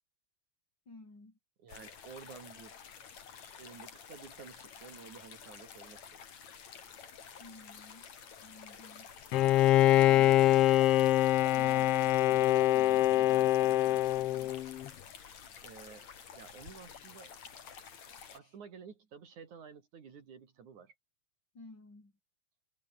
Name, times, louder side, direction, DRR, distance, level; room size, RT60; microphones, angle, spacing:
voice 1, 0.9-1.4 7.4-9.1 18.4-18.5 21.5-22.1, left 2 dB, 30° left, 6.8 m, -53 dB
voice 2, 1.6-2.8 3.6-6.3 15.6-17.4 18.3-20.9, right 6 dB, 65° right, 4.2 m, -52 dB
sound 1, 1.7-18.4, left 7 dB, 60° left, 4.0 m, -51 dB
Bowed string instrument, 9.3-14.9, left 14 dB, 80° left, 1.3 m, -24 dB
omnidirectional pair, 3.8 m